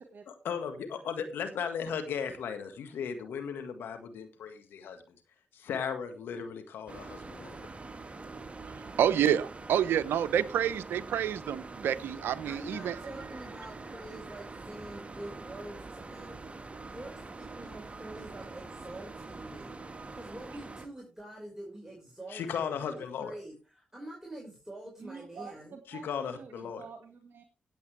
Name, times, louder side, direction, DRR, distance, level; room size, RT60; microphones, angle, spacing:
voice 1, 0.3-5.0 5.5-7.6 22.3-23.3 25.9-26.9, left 7 dB, 80° left, 8 dB, 1.7 m, -36 dB
sound 1, 6.9-20.9, right 3 dB, 35° right, 1.7 m, -44 dB
voice 2, 9.0-13.0, right 9 dB, 80° right, 15 dB, 0.7 m, -28 dB
voice 3, 12.4-16.4 16.8-22.8 23.2-25.7, right 1 dB, 15° right, -1 dB, 5.2 m, -46 dB
voice 4, 25.0-27.4, right 5 dB, 65° right, 6 dB, 1.8 m, -48 dB
17.0 x 7.9 x 3.4 m, 0.32 s
supercardioid pair, 40°, 4 cm